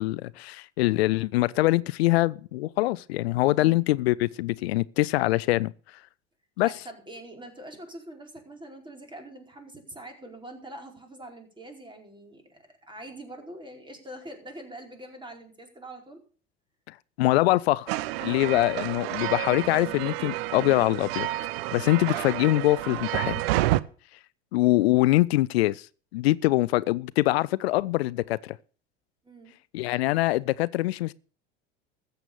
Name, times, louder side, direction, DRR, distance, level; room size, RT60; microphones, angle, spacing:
voice 1, 0.0-5.7 6.6-6.7 16.9-17.9 18.2-21.3 21.7-23.4 24.5-25.9 26.1-28.6 29.7-31.1, left 18 dB, 80° left, 0.5 m, -24 dB
voice 2, 3.5-3.8 6.6-16.2 29.2-29.5, right 1 dB, 15° right, 4.5 m, -44 dB
sound 1, 17.9-23.8, right 16 dB, 70° right, 0.8 m, -29 dB
14.0 x 8.0 x 6.9 m
hypercardioid pair, 80°, 31 cm